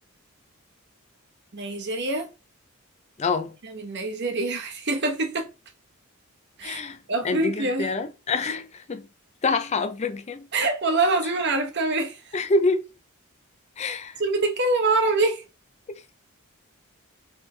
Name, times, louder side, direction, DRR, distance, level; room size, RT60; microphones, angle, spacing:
voice 1, 1.5-2.3 3.6-5.5 6.6-6.8 7.1-7.9 10.5-12.3 14.2-15.4, right 2 dB, 55° right, 1.0 m, -25 dB
voice 2, 3.2-3.5 6.6-7.0 7.2-9.1 9.4-10.5 12.3-12.9 13.8-14.2, left 3 dB, 30° left, 0.4 m, -26 dB
4.5 x 3.2 x 3.3 m
head